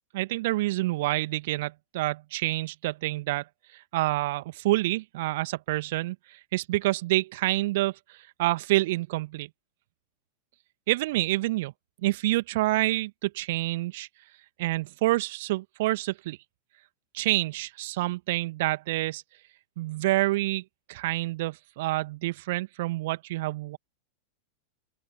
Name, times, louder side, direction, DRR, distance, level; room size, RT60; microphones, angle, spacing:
voice 1, 0.1-3.4 3.7-9.5 10.9-11.7 12.0-14.1 14.6-16.4 17.1-19.2 19.8-20.6 20.9-23.8, right 18 dB, 50° right, 1.9 m, -28 dB
open air
figure-of-eight pair, 90°, 0 cm